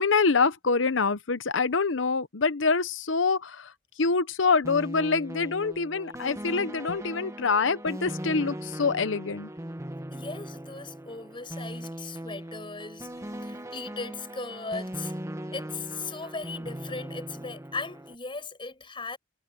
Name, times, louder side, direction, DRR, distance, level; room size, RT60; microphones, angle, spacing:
voice 1, 0.0-3.7 4.0-9.5, left 4 dB, 70° left, 0.9 m, -25 dB
sound 1, 4.6-18.1, right 1 dB, 15° right, 1.9 m, -39 dB
voice 2, 10.1-13.1 13.4-15.1 15.5-19.2, left 3 dB, 25° left, 5.8 m, -38 dB
head